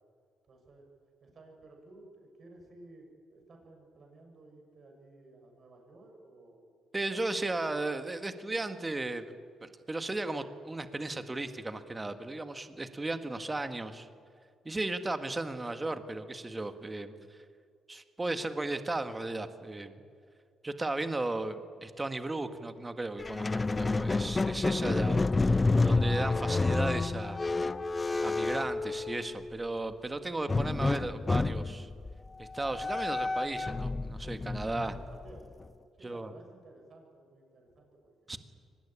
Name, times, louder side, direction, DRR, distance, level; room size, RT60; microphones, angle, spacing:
voice 1, 0.5-0.9 1.2-6.7 7.1-7.7 24.7-24.9 34.9-35.5 35.9-38.4, right 2 dB, 50° right, 2 dB, 6.8 m, -55 dB
voice 2, 6.9-9.3 9.6-14.1 14.7-17.1 17.9-20.0 20.6-27.4 28.2-31.9 32.4-34.9 36.0-36.3 38.3-38.4, right 2 dB, 20° right, 8 dB, 1.7 m, -35 dB
Squeak, 23.2-29.5 30.5-35.7, left 3 dB, 25° left, 0.6 m, -30 dB
24.0 x 20.0 x 10.0 m, 2.2 s
cardioid pair, 90°, 0 cm